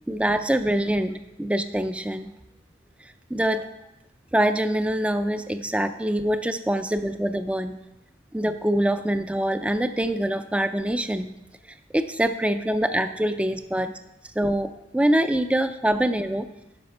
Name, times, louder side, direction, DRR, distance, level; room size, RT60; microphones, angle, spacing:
voice 1, 0.1-2.3 3.0-3.7 4.3-7.8 8.3-11.4 11.9-13.9 14.4-16.5, right 1 dB, 5° right, 9 dB, 0.3 m, -24 dB
11.5 x 5.2 x 5.3 m, 0.97 s
head